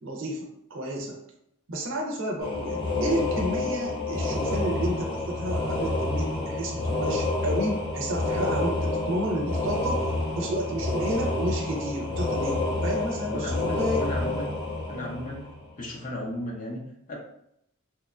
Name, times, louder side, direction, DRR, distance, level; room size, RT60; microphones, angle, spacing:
voice 1, 0.0-1.2 1.7-14.1, right 1 dB, 65° right, 1 dB, 0.5 m, -31 dB
sound 1, 2.4-15.9, left 2 dB, 80° left, 1.1 m, -28 dB
voice 2, 13.3-14.5 14.9-17.2, left 1 dB, 40° left, -3 dB, 0.5 m, -35 dB
2.9 x 2.2 x 2.4 m, 0.76 s
head